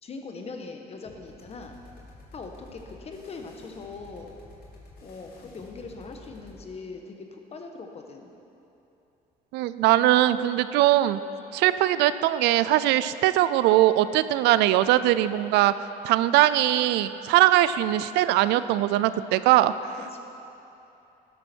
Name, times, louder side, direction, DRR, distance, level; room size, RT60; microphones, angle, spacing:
voice 1, 0.0-1.7 2.3-4.3 5.0-8.3 20.1-20.2, left 4 dB, 35° left, 4 dB, 1.3 m, -41 dB
sound 1, 1.0-6.7, left 2 dB, 65° left, 2.5 m, -50 dB
voice 2, 9.5-11.2 11.5-15.7 16.0-19.7, right 14 dB, 90° right, 14 dB, 0.4 m, -21 dB
12.5 x 12.0 x 4.5 m, 2.9 s
cardioid pair, 110°, 17 cm